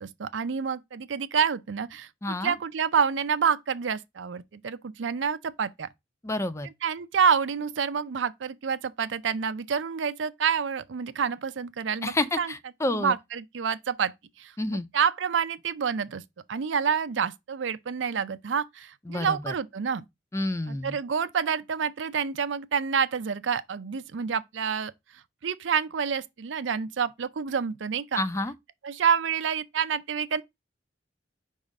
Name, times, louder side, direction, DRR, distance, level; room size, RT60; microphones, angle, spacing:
voice 1, 0.0-2.1 2.4-5.9 6.8-12.5 13.0-14.1 14.4-14.5 14.9-16.2 16.5-20.0 20.7-24.9 25.4-28.2 28.8-30.4, right 6 dB, 80° right, 0.5 m, -28 dB
voice 2, 2.2-2.6 6.2-6.7 12.0-13.1 14.6-14.9 19.1-19.5 20.3-21.0 28.2-28.5, left 2 dB, 15° left, 0.5 m, -29 dB
4.9 x 3.7 x 5.3 m
head